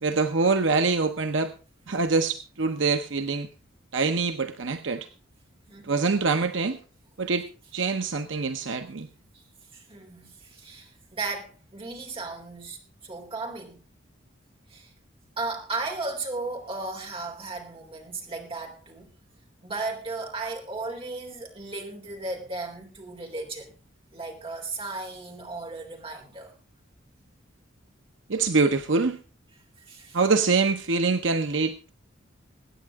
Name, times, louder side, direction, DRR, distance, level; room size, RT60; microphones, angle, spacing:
voice 1, 0.0-1.5 1.9-3.5 3.9-5.1 5.8-6.8 7.2-7.5 7.7-9.1 28.3-29.2 30.1-31.9, right 4 dB, 70° right, 0.8 m, -24 dB
voice 2, 9.7-13.8 14.7-14.9 15.4-19.1 19.6-23.8 24.1-26.5 29.8-30.2, right 3 dB, 30° right, 3.3 m, -35 dB
22.0 x 9.1 x 3.5 m
head